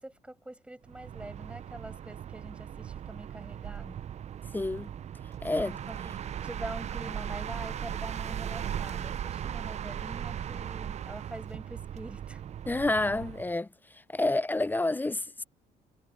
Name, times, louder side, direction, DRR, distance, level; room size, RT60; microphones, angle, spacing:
voice 1, 0.0-4.0 5.9-6.1 6.4-12.4, right 1 dB, 5° right, 6.3 m, -44 dB
sound 1, 0.9-13.5, right 9 dB, 40° right, 0.6 m, -38 dB
voice 2, 4.5-4.9 5.4-5.8 12.7-13.7 14.1-15.4, left 2 dB, 10° left, 0.4 m, -29 dB
cardioid pair, 110°, 17 cm